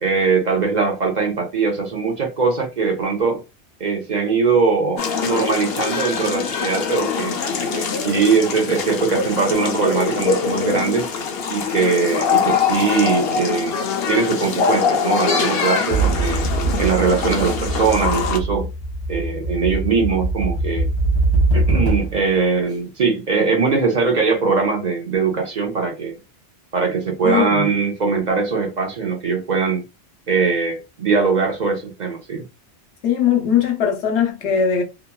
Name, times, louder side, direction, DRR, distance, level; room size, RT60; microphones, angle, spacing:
voice 1, 0.0-3.4 3.8-11.1 11.5-13.7 14.1-16.5 16.8-18.7 19.1-20.9 21.5-26.2 26.7-29.8 30.3-32.4, right 4 dB, 45° right, 0.7 m, -21 dB
sound 1, 5.0-18.4, left 6 dB, 65° left, 0.8 m, -23 dB
sound 2, 15.9-22.3, right 2 dB, 25° left, 0.8 m, -22 dB
voice 2, 27.2-27.7 33.0-34.8, left 7 dB, 90° left, 1.0 m, -19 dB
2.9 x 2.3 x 2.2 m
omnidirectional pair, 1.1 m